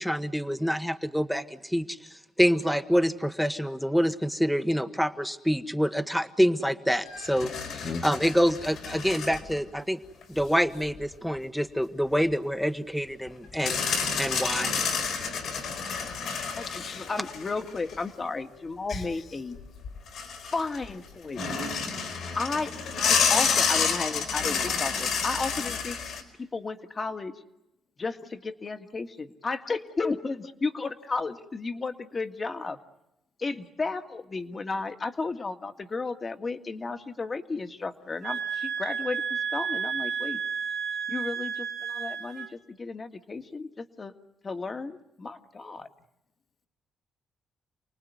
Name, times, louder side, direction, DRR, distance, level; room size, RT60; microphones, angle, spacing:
voice 1, 0.0-10.0 10.3-13.9 14.2-14.7, equal, ahead, 9 dB, 1.3 m, -26 dB
sound 1, 7.1-9.6 10.2-10.3 13.6-18.0 19.6-19.7 19.8-20.9 21.4-26.2, left 6 dB, 70° left, 4.7 m, -29 dB
voice 2, 7.6-8.0 16.7-17.1 18.9-19.2, left 4 dB, 50° left, 4 dB, 2.3 m, -37 dB
voice 3, 16.9-19.6 20.5-21.4 22.3-26.0 26.4-27.4 28.0-32.8 33.4-40.4 41.1-44.1 44.4-45.9, left 3 dB, 35° left, 8 dB, 1.9 m, -33 dB
sound 2, 38.2-42.5, right 7 dB, 80° right, 2.3 m, -32 dB
29.0 x 19.5 x 9.5 m, 0.93 s
cardioid pair, 90°, 0 cm